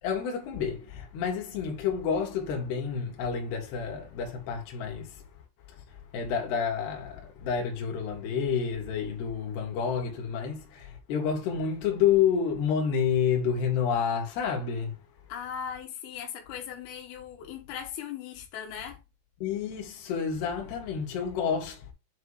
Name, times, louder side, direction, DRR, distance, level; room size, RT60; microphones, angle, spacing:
voice 1, 0.0-5.2 6.1-15.0 19.4-21.9, left 7 dB, 60° left, 3.5 m, -29 dB
voice 2, 15.3-19.0, left 8 dB, 85° left, 3.9 m, -38 dB
8.6 x 3.4 x 4.9 m
omnidirectional pair, 5.7 m